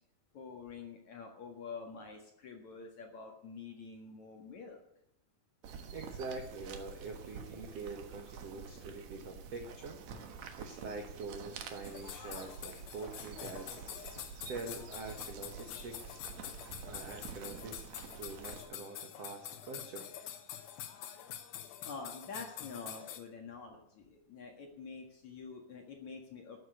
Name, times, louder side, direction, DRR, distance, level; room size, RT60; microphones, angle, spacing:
voice 1, 0.3-4.8 21.8-26.6, left 4 dB, 50° left, 2 dB, 2.5 m, -47 dB
sound 1, 5.6-18.6, right 6 dB, 85° right, 1.5 m, -48 dB
voice 2, 5.9-10.3 10.6-13.7 14.5-16.2 16.8-17.8 18.1-20.1, right 3 dB, 65° right, 3 dB, 1.5 m, -45 dB
sound 2, 11.8-23.2, left 10 dB, 70° left, 3.2 m, -46 dB
13.0 x 8.0 x 9.3 m, 0.75 s
omnidirectional pair, 5.2 m